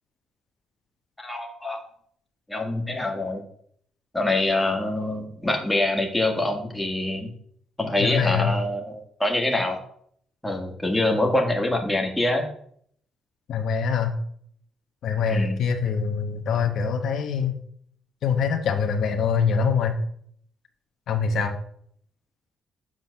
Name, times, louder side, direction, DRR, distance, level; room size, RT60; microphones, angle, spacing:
voice 1, 1.2-1.8 2.5-3.4 4.1-7.3 7.8-9.8 10.4-12.5 15.3-15.6, left 2 dB, 10° left, 2 dB, 1.8 m, -25 dB
voice 2, 8.0-8.5 13.5-14.1 15.0-17.5 18.2-20.0 21.1-21.5, left 6 dB, 70° left, 5 dB, 1.0 m, -24 dB
7.5 x 3.9 x 6.4 m, 0.64 s
cardioid pair, 90°, 0 cm